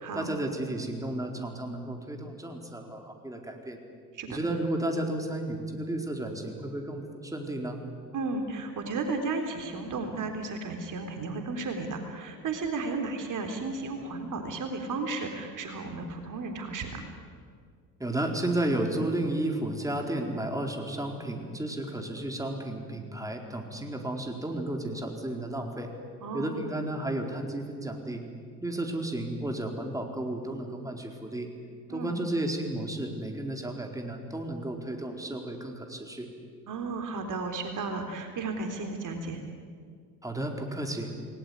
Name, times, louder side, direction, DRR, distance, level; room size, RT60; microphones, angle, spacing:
voice 1, 0.1-3.8 4.3-7.8 18.0-25.9 26.3-28.2 28.6-31.5 31.9-36.3 40.2-41.1, right 1 dB, 5° right, 3 dB, 4.5 m, -33 dB
voice 2, 8.1-17.1 26.2-26.5 31.9-32.1 36.7-39.4, right 3 dB, 40° right, 4 dB, 3.7 m, -34 dB
28.5 x 19.5 x 9.8 m, 2.1 s
figure-of-eight pair, 65°, 46 cm